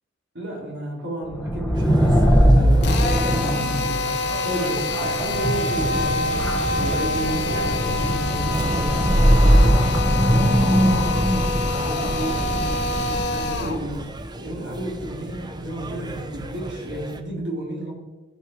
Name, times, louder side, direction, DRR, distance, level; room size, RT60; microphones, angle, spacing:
voice 1, 0.3-9.7 10.2-14.0 14.4-17.9, right 1 dB, 65° right, -3 dB, 3.9 m, -32 dB
sound 1, 1.3-13.9, equal, 5° left, 1.2 m, -21 dB
sound 2, 1.7-17.2, right 1 dB, 20° right, 0.7 m, -37 dB
Drill, 2.8-13.8, left 3 dB, 60° left, 1.1 m, -26 dB
15.0 x 5.6 x 4.7 m, 1.2 s
head